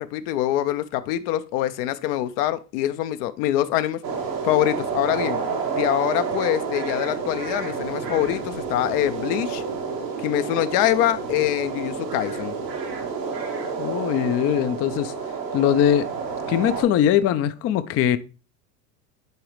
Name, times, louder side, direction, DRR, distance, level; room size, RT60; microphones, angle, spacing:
voice 1, 0.0-4.0 4.4-5.4 5.7-9.6 10.2-12.5, left 13 dB, 70° left, 0.7 m, -24 dB
sound 1, 4.0-16.8, right 5 dB, 90° right, 1.8 m, -29 dB
voice 2, 13.8-15.1 15.5-16.1 16.5-18.2, left 10 dB, 30° left, 0.4 m, -21 dB
9.4 x 3.8 x 3.2 m
hypercardioid pair, 80°, 48 cm